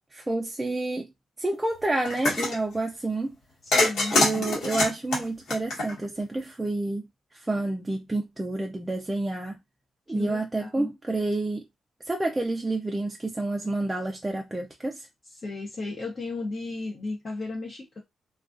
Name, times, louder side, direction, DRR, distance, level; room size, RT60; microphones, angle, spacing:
voice 1, 0.1-1.0 1.4-3.3 4.1-7.1 7.3-9.6 10.1-11.6 12.1-15.1, right 2 dB, 15° right, 0.4 m, -29 dB
sound 1, 2.1-2.6 3.7-6.2, left 2 dB, 75° left, 1.1 m, -24 dB
voice 2, 3.6-4.5 10.1-10.9 15.3-18.0, left 3 dB, 35° left, 0.7 m, -35 dB
2.3 x 2.3 x 2.5 m
cardioid pair, 110°, 0 cm